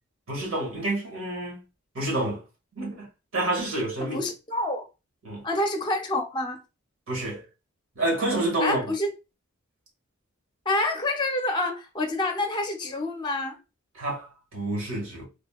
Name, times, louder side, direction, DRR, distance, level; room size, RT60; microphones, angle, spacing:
voice 1, 0.3-1.6 1.9-2.4 2.7-3.1 3.3-4.2 5.2-5.4 7.1-7.4 7.9-8.8 13.9-15.2, right 1 dB, 80° right, 1.3 m, -28 dB
voice 2, 4.0-4.8 5.4-6.6 8.6-9.1 10.7-13.6, left 2 dB, 20° left, 0.5 m, -27 dB
3.5 x 2.1 x 2.3 m
head